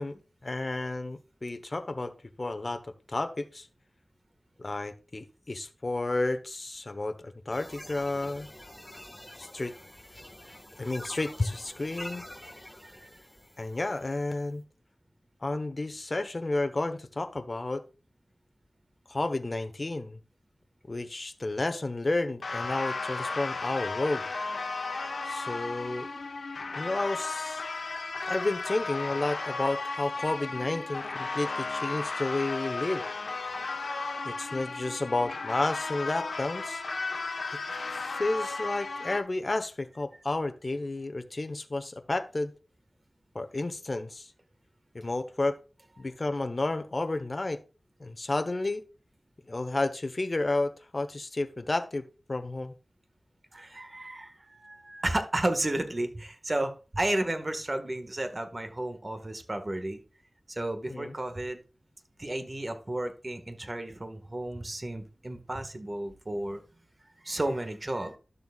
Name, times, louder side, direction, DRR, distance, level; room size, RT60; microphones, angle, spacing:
voice 1, 0.0-2.8 3.1-3.7 4.6-8.5 9.4-9.8 10.8-12.2 13.6-14.6 15.4-17.8 19.1-20.2 20.9-24.3 25.3-26.1 26.8-27.6 28.2-33.0 34.2-36.8 37.5-37.6 38.1-42.5 43.3-44.3 44.9-45.6 46.0-47.6 48.0-48.8 49.5-52.7 60.9-61.1, left 2 dB, 50° left, 8 dB, 1.0 m, -31 dB
sound 1, 7.5-14.4, left 1 dB, 15° left, 1.5 m, -47 dB
sound 2, 22.4-39.2, left 3 dB, 90° left, 1.0 m, -34 dB
voice 2, 53.5-60.0 60.5-61.6 62.2-66.6 67.2-68.2, right 1 dB, 40° right, 7 dB, 1.5 m, -33 dB
12.0 x 6.9 x 2.4 m, 0.33 s
wide cardioid pair, 50°, 0 cm